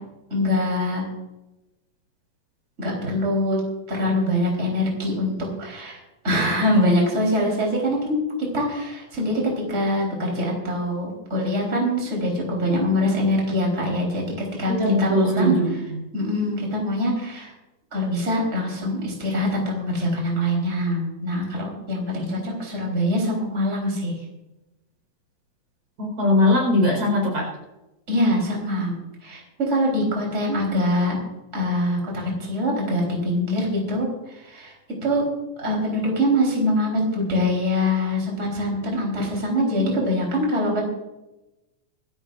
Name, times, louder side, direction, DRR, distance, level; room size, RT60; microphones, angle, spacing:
voice 1, 0.3-1.0 2.8-3.6 3.9-9.4 9.7-14.2 14.6-14.7 15.0-15.6 16.1-17.5 17.9-24.1 28.1-29.0 29.2-31.2 31.5-34.7 35.0-35.3 35.6-40.8, left 1 dB, 20° right, -1 dB, 4.3 m, -24 dB
voice 2, 14.7-15.7 22.1-22.2 26.0-27.5, left 1 dB, 65° right, 0 dB, 6.0 m, -20 dB
26.0 x 12.5 x 2.6 m, 0.99 s
omnidirectional pair, 3.6 m